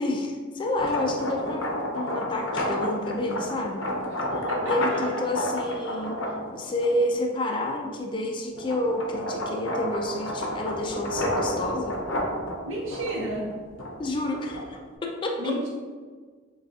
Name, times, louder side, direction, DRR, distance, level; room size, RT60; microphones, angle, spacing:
voice 1, 0.0-1.7 1.9-3.8 4.3-6.2 6.5-12.0 14.0-15.5, left 1 dB, 25° left, 1 dB, 0.4 m, -29 dB
sound 1, 0.6-7.2 7.7-14.9, left 1 dB, 85° left, 0.7 m, -31 dB
voice 2, 4.5-5.2 12.6-13.5 15.4-15.7, right 1 dB, 75° right, -4 dB, 0.8 m, -32 dB
6.3 x 2.3 x 2.7 m, 1.5 s
head